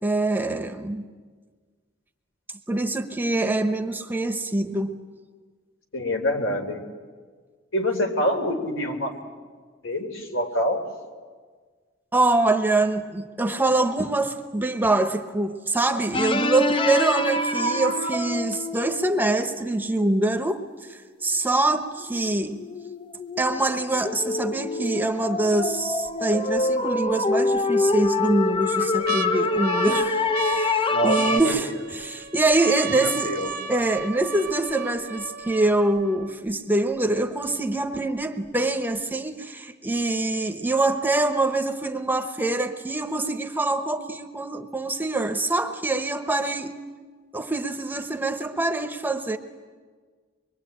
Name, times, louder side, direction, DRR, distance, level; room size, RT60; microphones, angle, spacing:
voice 1, 0.0-1.0 2.7-5.0 12.1-22.6 23.4-33.3 33.7-46.8 47.3-49.4, right 2 dB, 10° right, 7 dB, 1.0 m, -24 dB
voice 2, 5.9-6.8 7.7-9.1 9.8-10.9 30.9-31.4 33.0-33.5, left 1 dB, 75° left, 4 dB, 3.5 m, -26 dB
sound 1, 16.1-19.6 21.3-21.4 22.0-31.4, left 2 dB, 25° left, 0.7 m, -26 dB
sound 2, 25.6-26.1 26.6-26.7 27.6-28.1 28.5-36.5 37.2-37.3 37.5-38.0 38.4-38.5, right 5 dB, 50° right, 0.9 m, -35 dB
25.0 x 23.0 x 8.8 m, 1.5 s
head